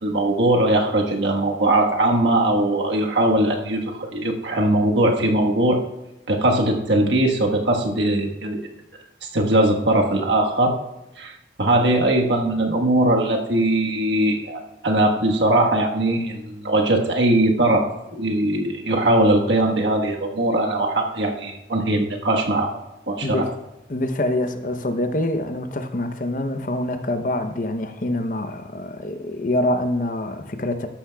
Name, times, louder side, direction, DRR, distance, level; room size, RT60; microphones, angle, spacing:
voice 1, 0.0-5.8 6.3-8.6 9.3-10.7 11.2-17.9 18.1-22.8 23.1-23.4, right 1 dB, 75° right, 1 dB, 1.4 m, -20 dB
voice 2, 23.9-30.9, left 1 dB, 45° left, 8 dB, 0.7 m, -25 dB
13.0 x 11.5 x 2.3 m, 0.96 s
head